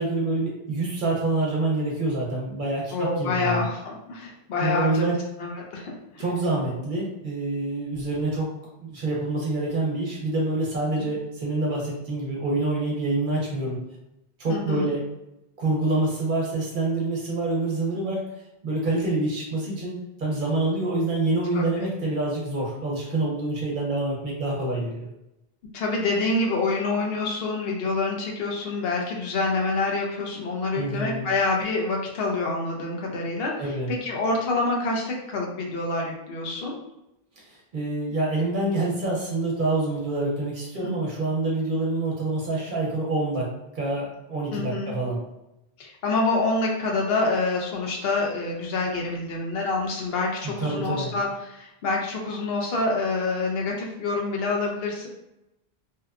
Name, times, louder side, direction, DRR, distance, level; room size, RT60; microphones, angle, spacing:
voice 1, 0.0-3.7 4.6-5.2 6.2-8.5 8.8-13.8 14.4-15.0 15.6-18.3 18.6-25.1 30.7-31.2 33.6-33.9 37.5-43.5 43.7-45.2 50.6-51.1, right 2 dB, 55° right, -3 dB, 0.8 m, -26 dB
voice 2, 2.9-5.1 5.4-6.2 14.5-14.9 21.5-21.9 25.7-33.5 33.9-36.7 40.8-40.9 44.5-44.9 45.8-55.1, left 3 dB, 70° left, -1 dB, 0.8 m, -27 dB
2.7 x 2.1 x 2.3 m, 0.88 s
omnidirectional pair, 1.1 m